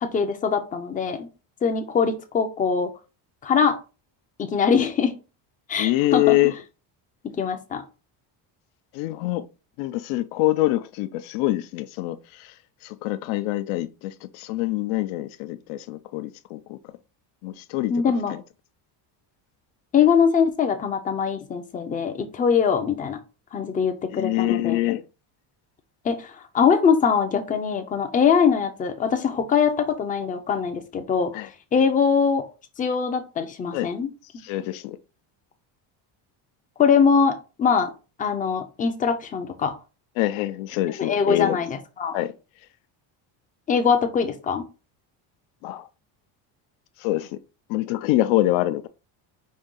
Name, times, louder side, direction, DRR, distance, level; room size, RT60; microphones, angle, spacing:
voice 1, 0.0-1.3 1.6-2.9 3.4-3.8 4.4-5.1 5.7-6.3 7.4-7.8 17.9-18.3 19.9-23.2 23.5-24.8 26.0-31.3 31.7-32.5 32.8-34.1 36.8-37.9 38.2-39.8 41.0-42.2 43.7-44.6, left 6 dB, 20° left, 0.3 m, -22 dB
voice 2, 5.8-6.5 8.9-9.5 9.8-12.5 12.8-16.8 17.4-17.9 18.3-18.4 24.1-25.0 31.3-31.5 33.7-33.9 34.4-35.0 40.2-41.6 42.1-42.3 45.6-45.9 47.0-47.3 47.7-48.9, left 16 dB, 85° left, 0.6 m, -25 dB
5.3 x 2.6 x 3.7 m
cardioid pair, 170°, 47 cm